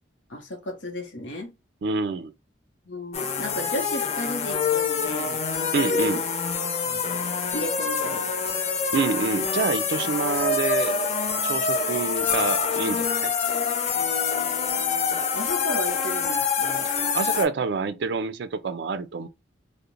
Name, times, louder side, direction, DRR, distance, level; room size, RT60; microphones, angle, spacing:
voice 1, 0.3-1.5 2.9-6.1 6.8-7.2 7.5-8.4 13.9-16.9, left 1 dB, 70° left, 0.8 m, -35 dB
voice 2, 1.8-2.3 5.7-6.2 8.9-11.1 11.4-13.3 16.8-19.3, right 4 dB, 60° right, 0.3 m, -27 dB
sound 1, 3.1-17.5, left 5 dB, 35° left, 0.3 m, -26 dB
2.4 x 2.1 x 2.9 m
head